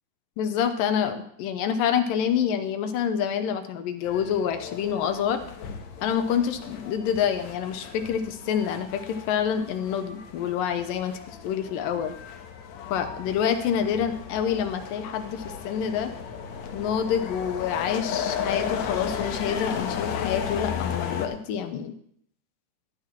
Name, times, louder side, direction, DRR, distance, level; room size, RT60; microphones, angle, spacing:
voice 1, 0.4-5.4 6.0-12.1 12.9-16.1 16.7-21.9, left 8 dB, 85° left, 8 dB, 2.6 m, -27 dB
sound 1, 4.0-21.3, left 7 dB, 65° left, 2.1 m, -35 dB
14.5 x 11.5 x 3.0 m, 0.68 s
omnidirectional pair, 3.9 m